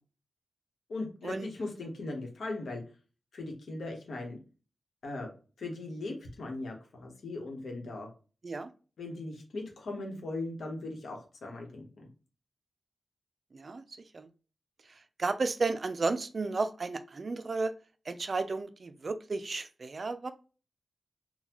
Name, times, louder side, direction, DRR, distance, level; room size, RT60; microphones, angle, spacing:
voice 1, 0.9-2.8 3.3-4.4 5.0-5.3 5.6-8.1 9.0-12.1, left 2 dB, 75° left, 2 dB, 1.1 m, -39 dB
voice 2, 13.5-13.8 14.1-14.3 14.9-17.7 18.1-20.3, right 3 dB, 40° right, 10 dB, 0.3 m, -33 dB
3.9 x 2.2 x 2.9 m, 0.36 s
wide cardioid pair, 155°, 0 cm